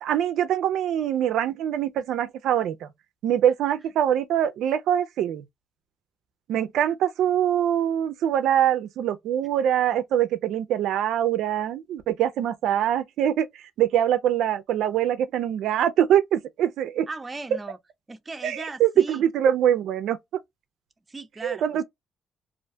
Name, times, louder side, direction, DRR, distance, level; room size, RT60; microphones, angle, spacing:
voice 1, 0.0-2.9 3.2-5.4 6.5-17.1 18.4-20.2 21.4-21.8, right 10 dB, 80° right, 0.3 m, -23 dB
voice 2, 17.1-17.8 18.1-19.2 21.1-21.8, right 3 dB, 25° right, 0.5 m, -37 dB
2.4 x 2.2 x 2.5 m
cardioid pair, 90°, 0 cm